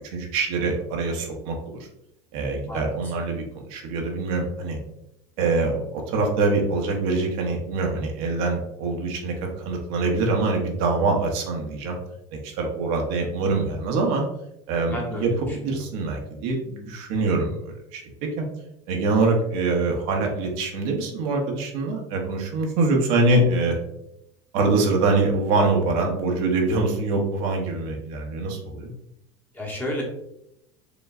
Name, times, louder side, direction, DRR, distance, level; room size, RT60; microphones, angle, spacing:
voice 1, 0.1-1.8 2.3-3.4 3.7-4.8 5.4-12.0 12.3-14.2 14.7-18.0 18.4-18.5 18.9-23.8 24.5-28.9, right 3 dB, 70° right, 1 dB, 1.0 m, -24 dB
voice 2, 14.9-15.8 29.5-30.0, left 1 dB, 10° left, -2 dB, 1.2 m, -32 dB
5.0 x 3.0 x 2.5 m, 0.81 s
supercardioid pair, 120°, 14 cm